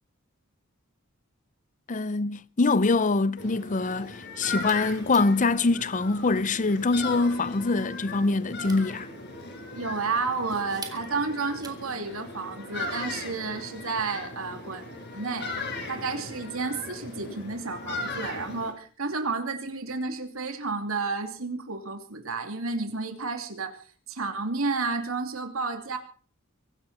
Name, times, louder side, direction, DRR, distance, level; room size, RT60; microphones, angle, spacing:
voice 1, 1.9-9.1, left 3 dB, 40° left, 0.7 m, -24 dB
sound 1, 3.4-18.7, left 3 dB, 55° left, 5.1 m, -38 dB
sound 2, 4.3-12.1, right 4 dB, 20° right, 2.8 m, -48 dB
voice 2, 9.8-14.8 15.1-15.5 15.9-23.8 24.1-26.0, right 4 dB, 80° right, 2.9 m, -31 dB
24.0 x 12.0 x 4.3 m
head